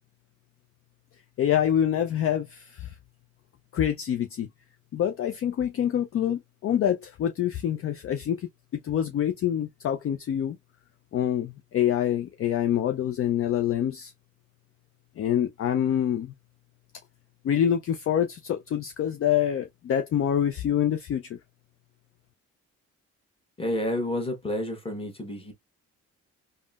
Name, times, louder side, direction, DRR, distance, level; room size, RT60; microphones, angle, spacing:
voice 1, 1.4-2.9 3.7-4.5 4.9-8.5 8.8-10.6 11.1-14.1 15.2-16.3 17.4-21.4, left 10 dB, 50° left, 0.4 m, -26 dB
voice 2, 23.6-25.5, left 1 dB, 20° left, 1.3 m, -30 dB
3.5 x 2.2 x 2.3 m
cardioid pair, 90°, 30 cm